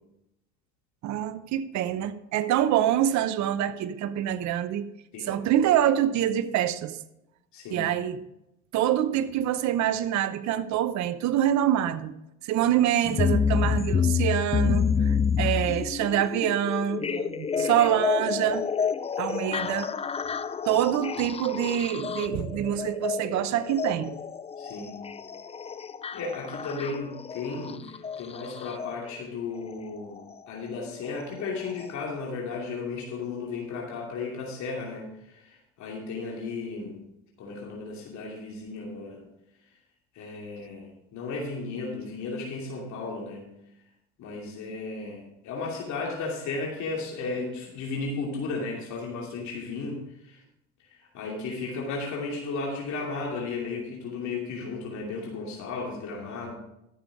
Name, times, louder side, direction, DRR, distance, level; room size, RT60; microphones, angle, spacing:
voice 1, 1.0-4.9 5.3-7.0 7.7-8.2 8.7-12.1 12.4-18.7 19.2-19.9 20.6-24.1, right 11 dB, 60° right, 12 dB, 0.8 m, -26 dB
voice 2, 7.5-7.9 24.6-25.0 26.1-37.0 37.4-39.2 40.1-43.4 44.2-50.4 50.9-56.5, left 3 dB, 60° left, -2 dB, 2.7 m, -34 dB
sound 1, 13.0-28.9 30.2-30.3 31.0-31.1 31.8-31.9, left 6 dB, 20° left, 0.5 m, -29 dB
13.0 x 7.1 x 4.8 m, 0.85 s
supercardioid pair, 85°, 32 cm